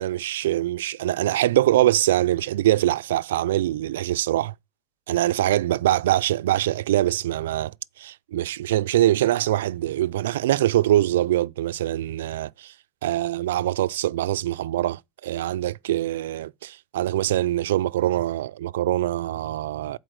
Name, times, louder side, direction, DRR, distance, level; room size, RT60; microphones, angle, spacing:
voice 1, 0.0-4.5 5.1-12.7 13.0-20.0, right 13 dB, 75° right, 0.4 m, -23 dB
7.9 x 4.4 x 6.3 m
supercardioid pair, 170°, 0 cm